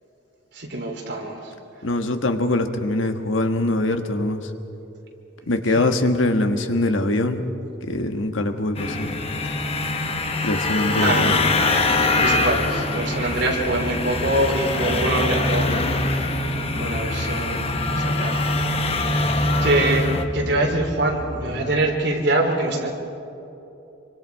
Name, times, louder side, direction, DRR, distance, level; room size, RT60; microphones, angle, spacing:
voice 1, 0.5-1.5 5.8-5.9 10.9-11.4 12.2-15.9 16.8-18.5 19.0-19.3 19.6-20.1 20.3-22.9, right 2 dB, 60° right, 1 dB, 3.5 m, -24 dB
voice 2, 1.8-4.5 5.5-7.5 7.8-9.1 10.4-11.4, left 2 dB, 85° left, 6 dB, 1.5 m, -23 dB
sound 1, 8.7-20.2, left 2 dB, 30° left, 1.1 m, -23 dB
sound 2, 11.3-22.0, left 1 dB, 55° left, 4.4 m, -34 dB
26.0 x 24.5 x 4.8 m, 2.9 s
head